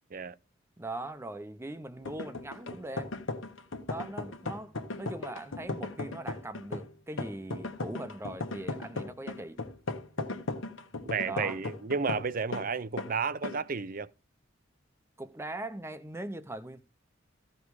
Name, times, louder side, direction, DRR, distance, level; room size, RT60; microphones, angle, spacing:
voice 1, 0.8-3.1 3.9-9.6 11.3-11.6 15.2-16.8, right 2 dB, 15° right, 0.7 m, -40 dB
sound 1, 2.0-12.7 13.0-13.1 13.4-13.6, left 2 dB, 90° left, 1.4 m, -37 dB
voice 2, 11.1-14.1, right 5 dB, 45° right, 0.6 m, -32 dB
15.0 x 5.2 x 4.8 m
head